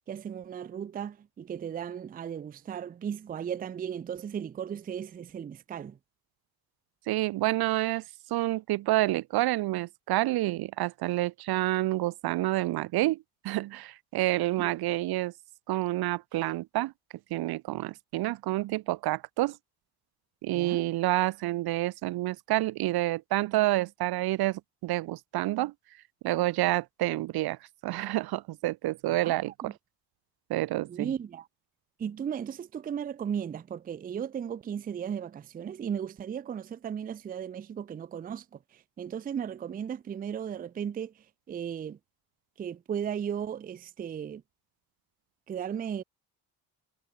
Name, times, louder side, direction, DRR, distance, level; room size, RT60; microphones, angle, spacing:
voice 1, 0.1-6.0 14.6-14.7 20.5-20.9 29.2-29.7 30.9-31.5 32.0-41.1 41.5-42.0 42.6-44.4 45.5-46.0, right 8 dB, 25° right, 0.4 m, -36 dB
voice 2, 7.1-8.0 8.3-15.3 15.7-16.9 17.3-19.6 20.4-25.7 26.2-29.7 30.5-31.1, right 17 dB, 75° right, 0.6 m, -28 dB
cardioid pair, 125°, 38 cm